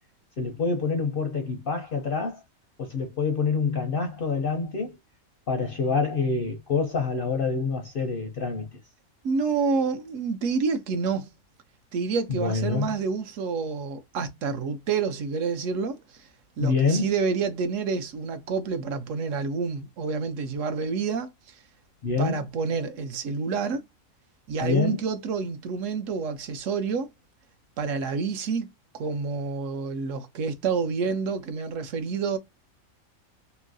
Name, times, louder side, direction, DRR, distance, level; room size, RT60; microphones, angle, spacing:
voice 1, 0.4-2.4 2.8-5.0 5.5-8.7 12.3-12.9 16.6-17.1 22.0-22.4 24.6-25.0, left 4 dB, 60° left, 0.6 m, -26 dB
voice 2, 9.2-11.3 11.9-16.3 16.6-21.6 22.2-23.8 24.5-27.1 27.8-28.7 28.9-32.4, right 5 dB, 70° right, 0.9 m, -28 dB
3.0 x 2.6 x 2.5 m
omnidirectional pair, 1.5 m